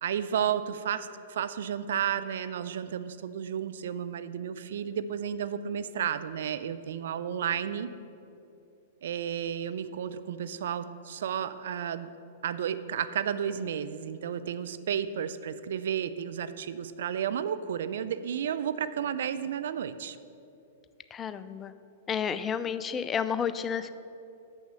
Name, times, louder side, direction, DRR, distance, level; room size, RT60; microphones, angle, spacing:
voice 1, 0.0-7.9 9.0-12.1 12.4-20.2, right 8 dB, 70° right, 13 dB, 0.4 m, -32 dB
voice 2, 21.1-21.7 22.1-23.9, left 7 dB, 25° left, 12 dB, 0.4 m, -31 dB
6.7 x 6.2 x 7.4 m, 2.7 s
hypercardioid pair, 110°, 0 cm